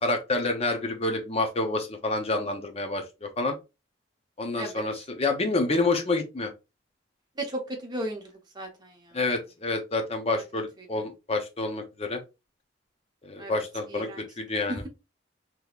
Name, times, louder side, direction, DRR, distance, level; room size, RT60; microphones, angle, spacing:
voice 1, 0.0-3.5 4.4-6.5 9.1-12.2 13.2-14.1 14.4-14.8, left 2 dB, 35° left, 0.7 m, -28 dB
voice 2, 7.4-9.2 10.8-11.0 13.4-13.6 13.9-14.3 14.7-14.9, right 1 dB, 25° right, 0.9 m, -36 dB
3.6 x 3.0 x 2.4 m
head